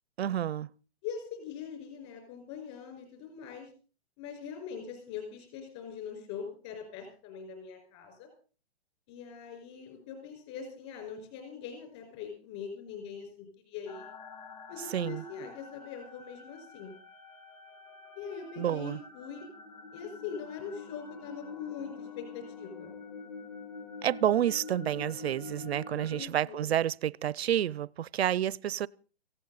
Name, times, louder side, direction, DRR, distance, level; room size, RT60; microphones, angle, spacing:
voice 1, 0.2-0.7 14.9-15.2 18.6-19.0 24.0-28.9, right 11 dB, 70° right, 0.6 m, -29 dB
voice 2, 1.0-3.7 4.2-8.3 9.1-14.1 14.7-17.0 18.2-19.5 19.9-23.0 26.1-26.7, left 7 dB, 25° left, 5.2 m, -42 dB
sound 1, 13.9-26.2, left 4 dB, 40° left, 4.6 m, -46 dB
18.0 x 16.0 x 4.1 m
hypercardioid pair, 175°, 33 cm